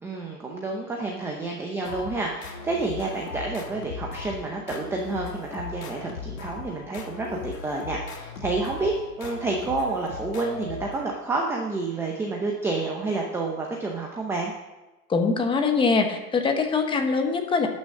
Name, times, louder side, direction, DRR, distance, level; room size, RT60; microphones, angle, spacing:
voice 1, 0.0-14.5, right 3 dB, 5° right, 0 dB, 0.7 m, -29 dB
sound 1, 1.8-11.4, left 5 dB, 75° left, 2.7 m, -38 dB
voice 2, 15.1-17.7, left 4 dB, 10° left, 5 dB, 1.0 m, -23 dB
12.0 x 6.3 x 8.4 m, 1.1 s
supercardioid pair, 150°, 47 cm